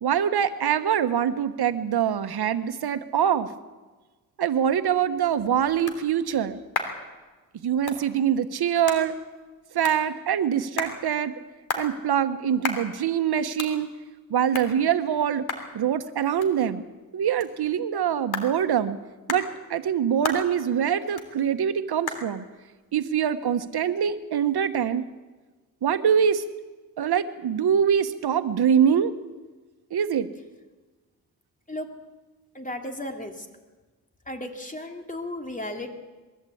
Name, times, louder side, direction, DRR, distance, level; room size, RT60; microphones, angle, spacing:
voice 1, 0.0-3.5 4.4-6.6 7.6-9.1 9.7-11.3 11.8-13.9 14.3-15.5 15.7-16.8 17.1-19.0 19.3-22.5 22.9-25.0 25.8-26.4 27.0-29.1 29.9-30.3, right 8 dB, 80° right, 10 dB, 1.1 m, -24 dB
sound 1, 5.0-24.3, left 4 dB, 75° left, 3.2 m, -38 dB
voice 2, 32.5-33.5 34.3-35.9, left 1 dB, 20° left, 4 dB, 3.0 m, -34 dB
22.0 x 15.0 x 8.5 m, 1.3 s
cardioid pair, 65°, 38 cm